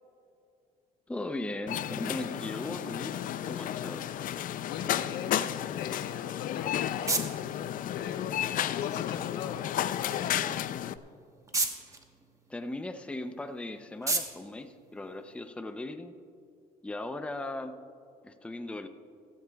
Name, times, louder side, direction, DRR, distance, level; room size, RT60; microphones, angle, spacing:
voice 1, 1.1-3.2 3.5-4.1 12.5-16.2 16.8-17.8 18.2-18.9, left 2 dB, 5° left, 8 dB, 0.5 m, -38 dB
sound 1, 1.7-11.0, left 11 dB, 55° left, 0.4 m, -33 dB
voice 2, 4.7-10.5, left 8 dB, 80° left, 7 dB, 0.9 m, -41 dB
sound 2, 6.3-15.7, right 3 dB, 20° right, 1.1 m, -38 dB
16.5 x 14.0 x 2.3 m, 2.4 s
cardioid pair, 110°, 17 cm